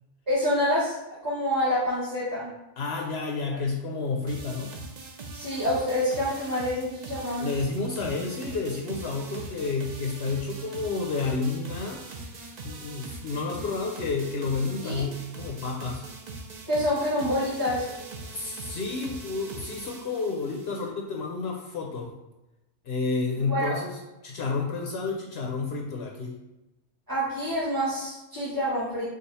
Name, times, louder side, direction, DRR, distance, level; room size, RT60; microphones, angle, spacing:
voice 1, 0.3-0.9 1.2-2.5 3.5-3.6 5.3-7.4 14.8-15.0 16.7-17.9 23.4-23.8 27.1-29.0, equal, 15° right, -10 dB, 1.4 m, -27 dB
voice 2, 2.8-4.8 7.4-12.0 12.6-16.0 18.3-22.1 22.8-26.4, left 4 dB, 65° left, 0 dB, 0.8 m, -30 dB
sound 1, 4.3-20.9, right 3 dB, 50° right, 0.5 m, -41 dB
4.9 x 2.4 x 4.1 m, 0.98 s
omnidirectional pair, 1.3 m